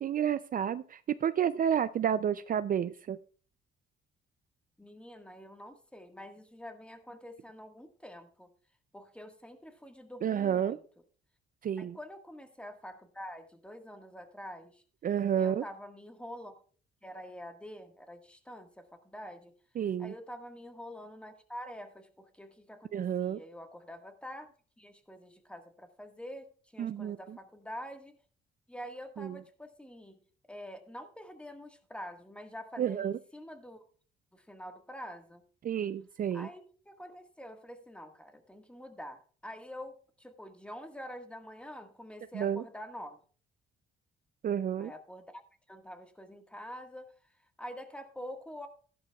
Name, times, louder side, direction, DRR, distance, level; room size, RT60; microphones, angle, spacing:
voice 1, 0.0-3.2 10.2-10.8 11.6-12.0 15.0-15.6 19.8-20.1 22.9-23.4 26.8-27.4 29.2-29.4 32.8-33.2 35.6-36.5 42.3-42.6 44.4-44.9, right 9 dB, 45° right, 13 dB, 0.4 m, -30 dB
voice 2, 4.8-8.5 8.9-10.8 11.8-14.8 15.3-16.5 17.0-19.5 20.0-24.5 24.8-28.2 28.7-30.2 30.5-33.8 34.3-35.4 36.3-43.2 44.8-45.4 45.7-47.1 47.6-48.7, equal, 5° left, 5 dB, 1.6 m, -46 dB
14.5 x 11.5 x 2.4 m, 0.42 s
cardioid pair, 90°, 20 cm